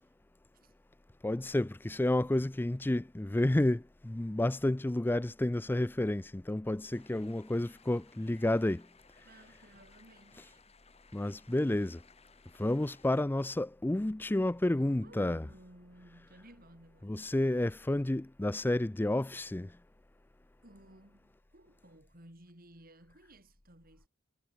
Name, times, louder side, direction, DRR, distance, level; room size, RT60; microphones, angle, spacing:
voice 1, 1.2-8.8 11.1-12.0 12.6-15.4 17.0-19.7, left 1 dB, 10° left, 0.4 m, -30 dB
sound 1, 6.9-13.2, left 5 dB, 30° left, 6.0 m, -62 dB
voice 2, 9.2-10.7 14.8-17.4 20.6-24.1, right 1 dB, 45° right, 5.7 m, -57 dB
head